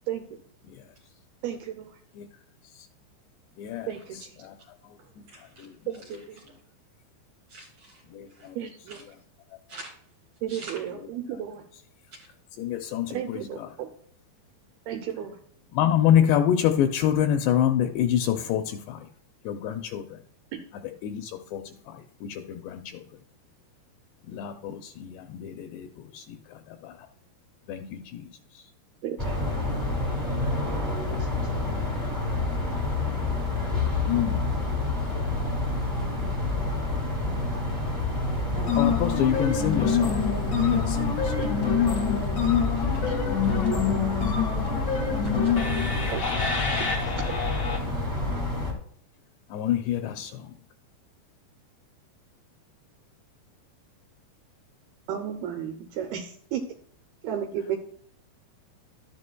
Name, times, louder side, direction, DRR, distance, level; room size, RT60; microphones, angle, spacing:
voice 1, 1.4-2.0 3.9-4.3 5.9-6.4 8.6-9.0 10.4-11.6 13.1-13.9 14.9-15.4 20.5-20.6 29.0-29.4 31.2-31.4 41.4-41.5 43.0-43.2 46.1-46.2 47.1-47.3 55.1-56.6 57.2-57.8, right 9 dB, 80° right, 5 dB, 2.4 m, -33 dB
voice 2, 3.6-3.9 4.4-4.5 5.6-5.7 8.1-8.6 12.6-13.5 15.7-19.1 19.5-20.0 21.0-23.0 24.3-26.4 26.8-26.9 27.7-28.3 34.1-34.4 38.8-40.2 40.6-41.3 49.5-50.5, left 10 dB, 80° left, 4 dB, 2.7 m, -26 dB
voice 3, 5.3-5.7 7.5-8.0 8.3-8.5 8.9-9.0 9.7-9.9 10.5-10.8 42.7-43.0 43.9-44.0 45.2-45.5, right 2 dB, 55° right, -2 dB, 2.7 m, -44 dB
sound 1, 29.2-48.7, left 2 dB, 25° right, 0.4 m, -28 dB
sound 2, 38.5-47.8, left 7 dB, 50° left, 1.3 m, -26 dB
12.5 x 9.7 x 2.3 m, 0.62 s
omnidirectional pair, 5.0 m